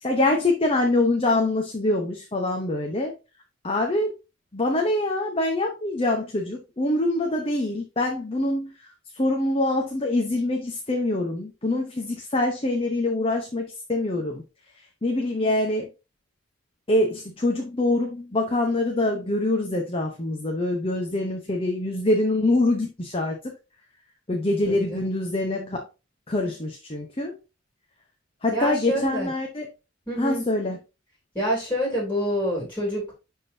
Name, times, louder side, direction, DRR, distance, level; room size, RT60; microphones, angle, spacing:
voice 1, 0.0-3.1 3.6-4.1 4.5-8.7 9.1-14.4 15.0-15.9 16.9-23.5 24.3-25.8 26.3-27.3 28.4-29.7 30.2-30.8, left 2 dB, 30° left, 0.9 m, -24 dB
voice 2, 24.6-25.0 28.5-29.3 30.1-30.4 31.3-33.1, equal, 10° left, 3.4 m, -27 dB
11.0 x 3.8 x 2.7 m
head